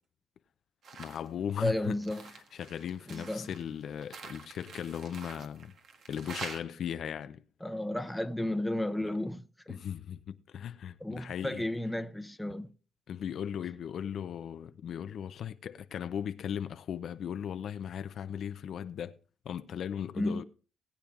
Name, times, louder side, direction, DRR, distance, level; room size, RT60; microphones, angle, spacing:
sound 1, 0.8-1.3 1.6-6.6, right 5 dB, 65° right, 1.5 m, -46 dB
voice 1, 0.9-2.0 2.3-5.7 6.1-7.4 9.7-11.6 13.1-19.2 19.4-20.4, left 9 dB, 65° left, 0.6 m, -37 dB
voice 2, 1.6-2.3 3.1-3.5 7.6-9.8 11.0-12.7 20.2-20.4, left 1 dB, 5° left, 0.8 m, -33 dB
19.5 x 8.6 x 2.5 m
cardioid pair, 90°, 0 cm